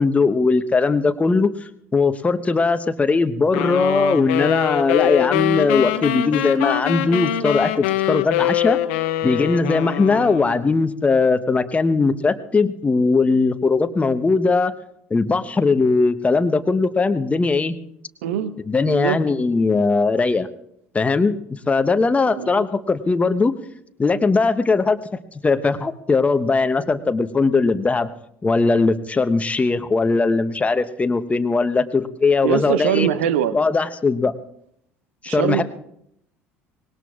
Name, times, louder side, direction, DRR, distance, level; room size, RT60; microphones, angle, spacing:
voice 1, 0.0-1.5 1.9-8.8 9.2-14.7 15.1-17.8 18.7-20.5 20.9-23.6 24.0-25.0 25.4-28.1 28.4-33.1 33.5-34.3 35.2-35.6, left 4 dB, 20° left, 9 dB, 1.0 m, -19 dB
sound 1, 3.5-10.7, left 13 dB, 65° left, 0.7 m, -23 dB
voice 2, 18.2-18.5 18.8-19.2 22.3-22.5 32.4-33.6 35.3-35.6, right 10 dB, 70° right, 14 dB, 0.7 m, -22 dB
24.5 x 20.5 x 2.4 m, 0.74 s
figure-of-eight pair, 60°, 7 cm